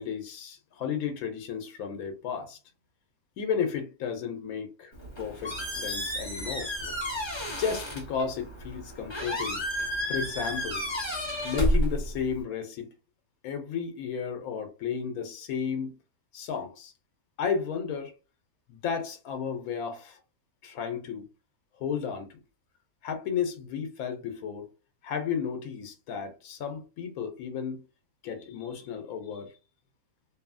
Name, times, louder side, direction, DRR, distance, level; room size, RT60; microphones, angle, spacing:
voice 1, 0.0-2.6 3.4-6.7 7.6-9.6 10.1-10.9 11.4-12.9 13.4-15.9 16.3-16.9 17.4-18.1 18.7-20.2 20.6-21.3 21.8-22.4 23.0-24.7 25.0-27.8 28.2-29.5, left 7 dB, 85° left, 1.1 m, -33 dB
Squeak, 4.9-12.4, equal, 20° left, 0.9 m, -31 dB
2.7 x 2.6 x 2.4 m
omnidirectional pair, 1.5 m